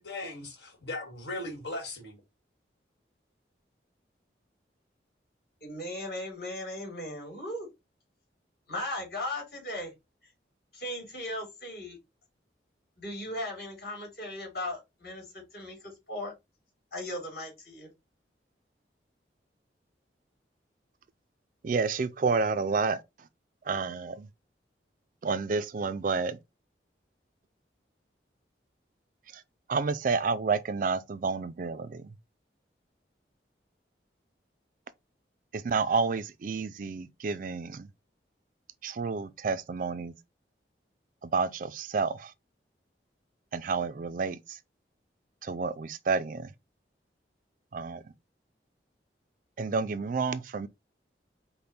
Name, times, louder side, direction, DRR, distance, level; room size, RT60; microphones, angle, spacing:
voice 1, 0.0-2.2, left 2 dB, 75° left, 1.5 m, -38 dB
voice 2, 5.6-7.7 8.7-9.9 10.2-10.3 10.7-12.0 13.0-16.3 16.9-17.9, left 1 dB, 55° left, 2.7 m, -37 dB
voice 3, 21.6-23.3 23.7-24.3 25.2-26.4 29.3-29.4 29.7-32.1 35.5-37.9 38.8-40.1 41.2-42.3 43.5-44.6 45.4-46.5 47.7-48.1 49.6-50.7, right 4 dB, 45° right, 0.4 m, -30 dB
5.2 x 2.1 x 4.2 m
head